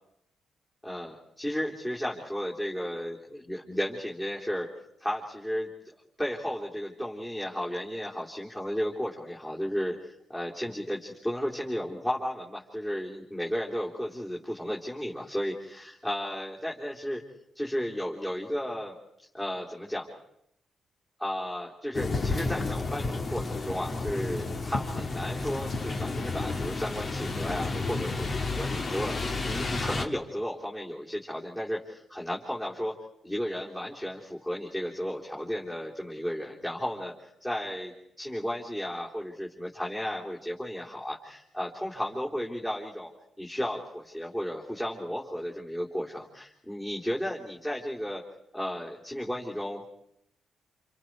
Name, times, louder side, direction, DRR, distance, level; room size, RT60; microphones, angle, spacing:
voice 1, 0.8-4.7 5.0-17.2 17.5-18.9 19.3-20.1 21.2-28.3 28.6-32.9 33.2-37.9 38.2-43.1 43.4-48.2 48.5-49.9, equal, 10° left, -4 dB, 3.5 m, -34 dB
sound 1, 21.9-30.1, left 3 dB, 40° left, 2.1 m, -31 dB
28.5 x 28.5 x 4.8 m, 0.77 s
cardioid pair, 100°, 0 cm